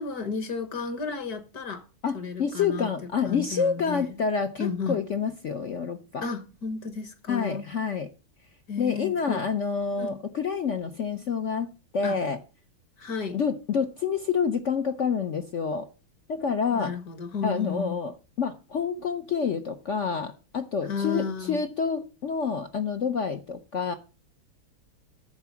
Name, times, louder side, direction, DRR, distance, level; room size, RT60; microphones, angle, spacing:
voice 1, 0.0-1.9 2.1-4.2 4.6-5.0 6.2-7.7 8.7-9.5 10.0-10.2 12.0-12.3 13.0-13.4 16.7-17.9 20.9-21.6, left 5 dB, 55° left, 1.5 m, -33 dB
voice 2, 2.0-6.3 7.3-8.1 8.8-11.7 11.9-12.4 13.3-15.9 16.3-16.9 17.4-23.9, left 6 dB, 70° left, 0.7 m, -28 dB
9.5 x 6.8 x 7.1 m
omnidirectional pair, 2.3 m